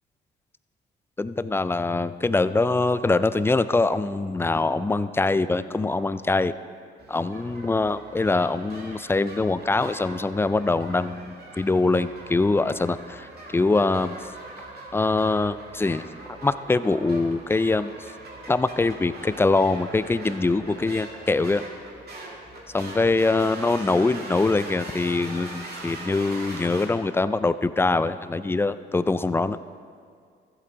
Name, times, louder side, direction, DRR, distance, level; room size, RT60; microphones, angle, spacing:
voice 1, 1.2-6.5 7.1-14.2 14.9-16.0 16.3-17.9 18.5-21.6 22.7-29.6, left 3 dB, 10° left, 14 dB, 0.3 m, -23 dB
sound 1, 7.0-26.9, right 2 dB, 50° right, 2.2 m, -41 dB
14.5 x 7.7 x 3.9 m, 2.2 s
cardioid pair, 90°, 20 cm